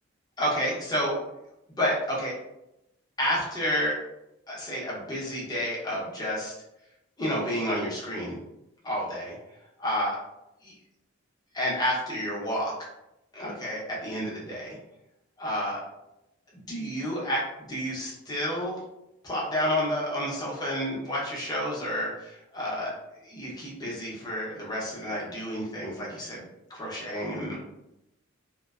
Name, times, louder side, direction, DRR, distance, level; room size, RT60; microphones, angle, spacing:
voice 1, 0.4-1.2 1.8-2.4 3.2-4.0 4.5-6.5 7.2-8.4 8.8-9.4 9.8-10.2 10.7-10.8 11.5-12.7 13.3-14.8 15.4-15.8 16.7-18.8 19.2-22.9 23.2-26.4 26.7-27.6, equal, 20° left, -5 dB, 0.7 m, -30 dB
2.5 x 2.2 x 2.3 m, 0.88 s
head